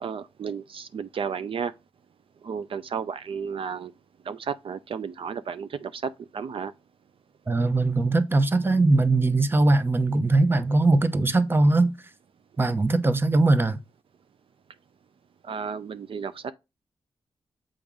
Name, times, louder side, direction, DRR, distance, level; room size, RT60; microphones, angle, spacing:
voice 1, 0.0-1.7 2.4-3.9 4.2-6.7 15.4-16.5, right 6 dB, 70° right, 0.4 m, -33 dB
voice 2, 7.5-11.9 12.6-13.8, right 2 dB, 20° right, 0.7 m, -21 dB
7.0 x 5.1 x 3.6 m
wide cardioid pair, 130°, 10 cm